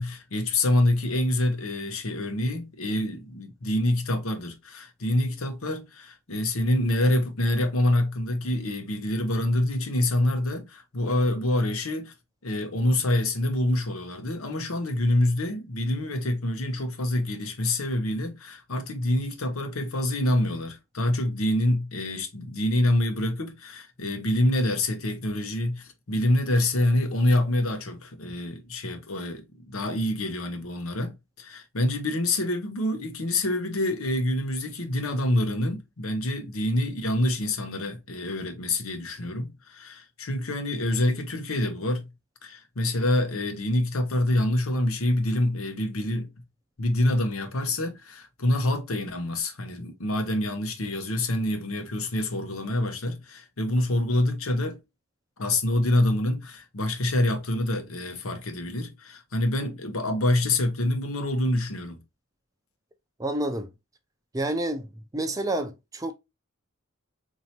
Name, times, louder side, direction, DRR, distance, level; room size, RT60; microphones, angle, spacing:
voice 1, 0.0-12.1 12.4-42.1 42.4-46.3 46.8-54.8 55.4-62.0, left 1 dB, 80° left, 0.9 m, -26 dB
voice 2, 63.2-63.7 64.3-64.9 65.1-66.1, right 1 dB, 15° right, 0.5 m, -28 dB
4.2 x 2.8 x 2.8 m
head